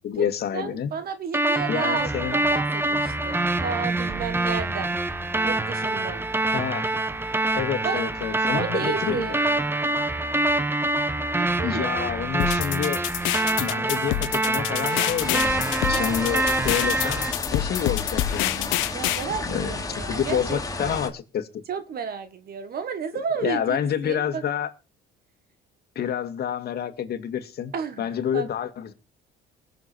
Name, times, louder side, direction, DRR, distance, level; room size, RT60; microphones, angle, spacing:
voice 1, 0.0-0.9 1.7-2.4 6.5-6.9 7.5-9.4 11.6-13.1 13.6-15.6 15.9-18.7 19.3-19.7 20.1-21.6 23.4-24.7 26.0-27.7 28.0-28.9, left 9 dB, 55° left, 2.2 m, -28 dB
voice 2, 0.5-5.0 5.4-6.3 7.8-8.0 8.5-9.4 11.4-12.1 15.9-16.2 18.9-21.0 21.7-23.8 24.0-24.4 27.7-28.1 28.3-28.5, right 6 dB, 50° right, 1.6 m, -32 dB
sound 1, 1.3-17.3, right 2 dB, 10° right, 1.2 m, -25 dB
sound 2, 12.4-19.2, left 17 dB, 90° left, 0.9 m, -27 dB
sound 3, 15.2-21.1, left 3 dB, 20° left, 2.9 m, -32 dB
20.5 x 7.2 x 4.5 m
cardioid pair, 100°, 20 cm